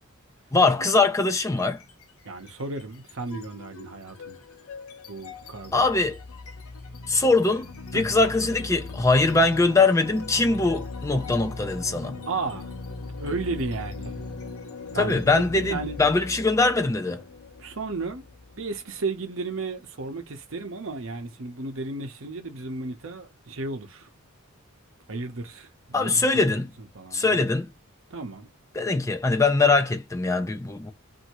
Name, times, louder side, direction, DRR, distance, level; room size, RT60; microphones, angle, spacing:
voice 1, 0.5-1.8 5.7-6.2 7.1-12.1 14.9-17.2 25.9-26.7 27.1-27.7 28.7-30.9, left 3 dB, 15° left, 0.4 m, -22 dB
sound 1, 1.5-2.0 2.4-19.0, left 3 dB, 80° left, 0.7 m, -39 dB
voice 2, 2.2-4.4 5.1-5.9 7.9-8.3 12.3-12.7 13.2-14.2 14.9-16.0 17.6-18.3 18.6-24.1 25.1-26.3 26.8-27.4 28.1-28.5, right 3 dB, 65° right, 0.8 m, -34 dB
2.7 x 2.6 x 2.9 m
head